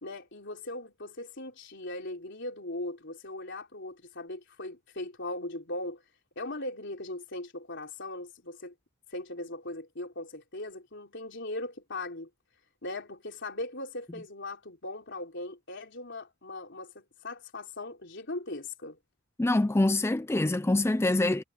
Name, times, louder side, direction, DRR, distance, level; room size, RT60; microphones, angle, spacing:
voice 1, 0.0-6.0 6.4-8.7 9.1-12.3 12.8-19.0, left 2 dB, 55° left, 4.1 m, -39 dB
voice 2, 19.4-21.4, left 2 dB, 10° left, 0.4 m, -25 dB
head